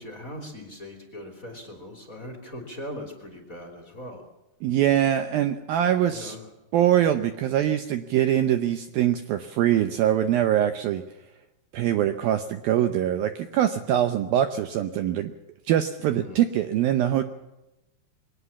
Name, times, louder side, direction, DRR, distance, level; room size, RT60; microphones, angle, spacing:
voice 1, 0.0-4.3 5.7-6.5 16.0-16.4, left 1 dB, 20° left, 3 dB, 2.8 m, -40 dB
voice 2, 4.6-6.4 6.7-11.0 11.7-15.3 15.7-17.2, right 11 dB, 75° right, 8 dB, 2.3 m, -23 dB
23.0 x 18.5 x 7.2 m, 0.95 s
omnidirectional pair, 5.0 m